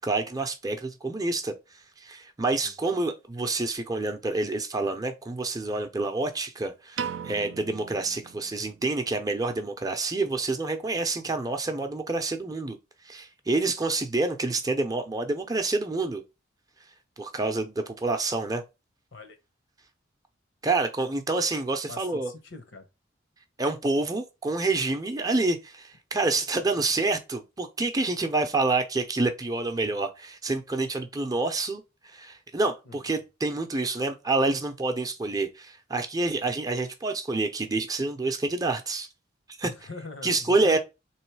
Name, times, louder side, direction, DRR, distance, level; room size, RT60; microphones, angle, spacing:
voice 1, 0.0-1.5 2.0-12.8 13.0-16.2 17.2-18.6 20.6-22.3 23.6-39.1 39.6-39.7 40.2-40.8, right 3 dB, 20° right, 0.6 m, -28 dB
Piano, 7.0-9.2, right 7 dB, 80° right, 0.3 m, -38 dB
voice 2, 21.9-22.9 26.8-27.1 32.8-33.0 39.6-40.8, left 3 dB, 75° left, 1.0 m, -42 dB
3.7 x 3.1 x 4.6 m
head